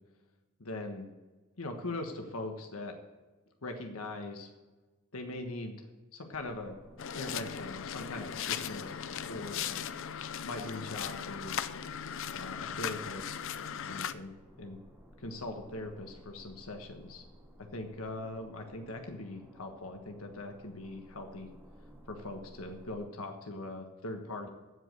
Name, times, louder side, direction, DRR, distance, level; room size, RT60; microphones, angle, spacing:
voice 1, 0.6-1.1 1.6-3.0 3.6-4.5 5.1-5.9 6.1-6.8 7.1-9.9 10.4-11.6 12.3-13.4 13.8-14.8 15.2-17.2 17.7-21.5 22.1-24.5, left 2 dB, 85° left, 4 dB, 1.4 m, -41 dB
sound 1, 6.3-23.0, equal, 10° right, 2.4 m, -56 dB
sound 2, 7.0-14.1, left 8 dB, 65° left, 0.6 m, -38 dB
15.5 x 5.2 x 7.9 m, 1.2 s
head